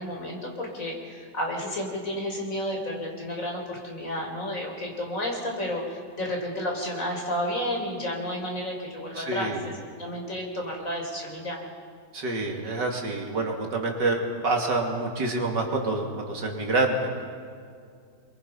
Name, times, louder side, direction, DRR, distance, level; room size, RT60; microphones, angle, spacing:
voice 1, 0.0-11.6, equal, 50° left, 1 dB, 4.4 m, -31 dB
voice 2, 9.2-9.6 12.1-17.2, right 2 dB, 80° right, 1 dB, 3.2 m, -27 dB
27.5 x 23.5 x 5.6 m, 2.2 s
omnidirectional pair, 1.9 m